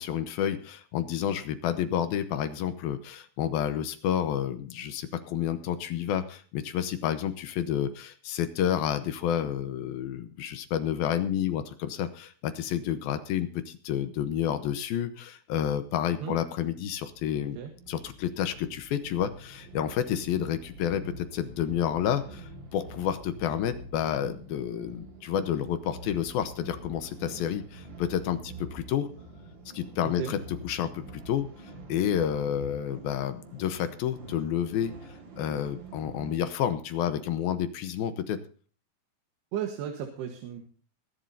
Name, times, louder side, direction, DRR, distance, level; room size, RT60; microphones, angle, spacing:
voice 1, 0.0-17.6 17.9-29.1 29.7-31.5 31.9-34.9 35.4-38.4, left 9 dB, 75° left, 10 dB, 2.6 m, -30 dB
sound 1, 16.9-36.4, right 2 dB, 40° right, 1.8 m, -46 dB
voice 2, 30.0-30.3 39.5-40.7, right 9 dB, 85° right, 4 dB, 3.4 m, -34 dB
22.5 x 11.0 x 2.7 m, 0.41 s
omnidirectional pair, 4.6 m